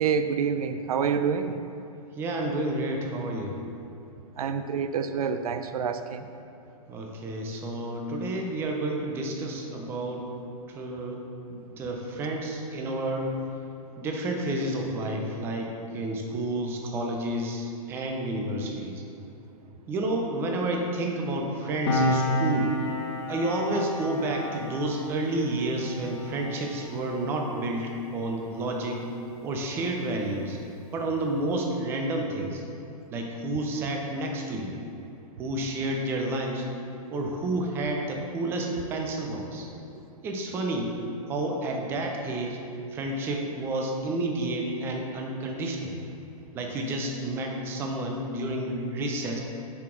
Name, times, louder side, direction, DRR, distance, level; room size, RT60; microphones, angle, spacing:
voice 1, 0.0-1.6 4.4-6.3, right 6 dB, 75° right, 9 dB, 0.4 m, -27 dB
voice 2, 2.1-3.6 6.9-10.3 10.7-11.2 11.5-13.4 14.0-19.0 19.9-22.8 23.3-29.0 29.4-30.6 30.9-32.6 33.1-34.8 35.4-36.7 37.1-39.7 40.2-40.9 41.3-42.6 42.9-45.9 46.5-49.4, right 1 dB, 10° right, 1 dB, 0.5 m, -30 dB
Piano, 21.9-28.9 29.2-29.4, equal, 50° left, 1.0 m, -31 dB
7.0 x 4.9 x 3.7 m, 2.8 s
hypercardioid pair, 155°, 19 cm